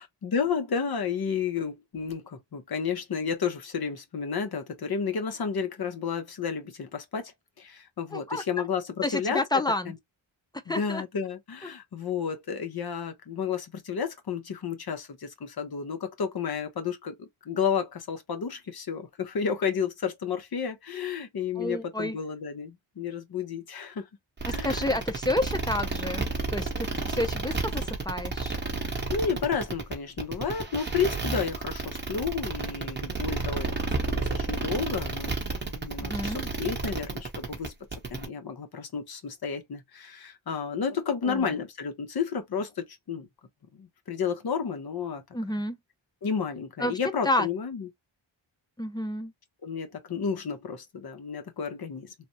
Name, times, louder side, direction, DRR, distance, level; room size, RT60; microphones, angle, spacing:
voice 1, 0.0-7.3 7.6-9.4 9.9-10.0 10.7-24.1 24.5-24.9 28.9-35.3 35.6-43.3 43.7-45.2 46.2-47.9 49.6-52.1, left 6 dB, 50° left, 0.9 m, -32 dB
voice 2, 8.1-8.4 9.0-9.9 10.7-11.0 11.6-11.7 21.6-22.2 24.5-28.5 36.0-36.5 41.2-41.5 45.3-45.8 46.8-47.0 47.3-47.5 48.8-49.3, left 1 dB, 10° left, 0.3 m, -30 dB
sound 1, 24.4-38.3, right 3 dB, 25° right, 0.9 m, -31 dB
3.3 x 2.1 x 2.7 m
wide cardioid pair, 145°, 46 cm